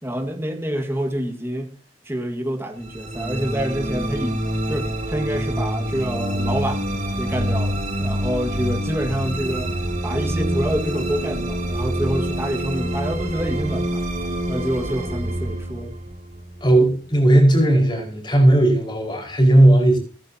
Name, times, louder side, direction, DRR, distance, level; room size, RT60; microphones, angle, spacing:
voice 1, 0.0-1.7 2.1-4.4 4.7-6.8 7.2-9.7 10.0-14.0 14.5-15.9, equal, 15° right, 1.8 m, -27 dB
sound 1, 2.8-17.2, right 1 dB, 40° right, 2.8 m, -26 dB
voice 2, 16.6-20.0, right 1 dB, 25° left, 5.1 m, -16 dB
23.0 x 10.5 x 2.9 m
head